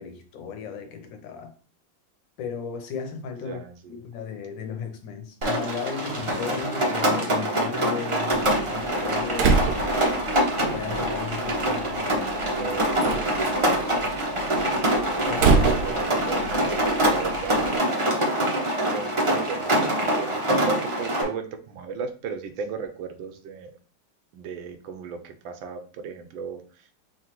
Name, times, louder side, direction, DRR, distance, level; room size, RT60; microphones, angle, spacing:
voice 1, 0.0-1.5 2.4-3.6 3.9-10.1 10.7-12.2 12.6-12.8 15.2-15.9, left 6 dB, 80° left, 1.5 m, -35 dB
voice 2, 3.4-3.9 12.0-13.1 15.7-17.8 18.9-20.3 20.6-23.7 24.3-26.8, right 5 dB, 90° right, 1.4 m, -36 dB
Rain, 5.4-21.2, right 1 dB, 35° right, 0.4 m, -25 dB
Slam, 8.3-17.8, right 4 dB, 65° right, 1.1 m, -28 dB
4.9 x 3.0 x 3.0 m
omnidirectional pair, 2.1 m